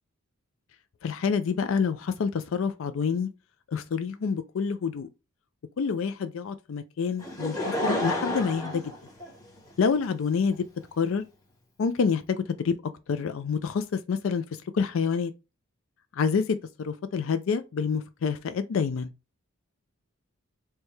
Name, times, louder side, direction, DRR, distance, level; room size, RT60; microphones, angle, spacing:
voice 1, 1.0-3.3 3.7-5.1 5.8-8.9 9.8-10.7 11.0-11.2 11.8-12.8 13.1-14.4 14.7-15.3 16.1-19.1, left 5 dB, 65° left, 0.4 m, -27 dB
Laughter / Crowd, 7.2-9.8 10.5-10.6, left 1 dB, 15° left, 1.2 m, -30 dB
4.5 x 2.2 x 3.2 m
head